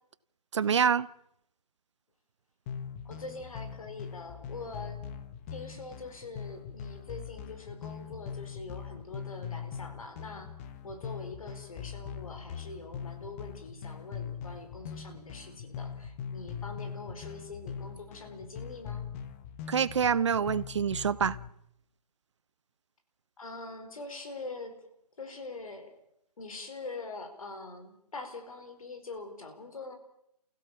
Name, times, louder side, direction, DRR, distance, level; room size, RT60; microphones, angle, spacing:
voice 1, 0.5-1.1 19.7-21.4, right 7 dB, 45° right, 0.8 m, -26 dB
sound 1, 2.7-21.5, left 7 dB, 20° left, 1.1 m, -42 dB
voice 2, 3.0-5.0 5.5-19.0 23.4-24.8 25.2-25.9 26.4-29.9, left 3 dB, 60° left, 4.9 m, -44 dB
29.5 x 16.0 x 7.1 m
figure-of-eight pair, 150°, 20 cm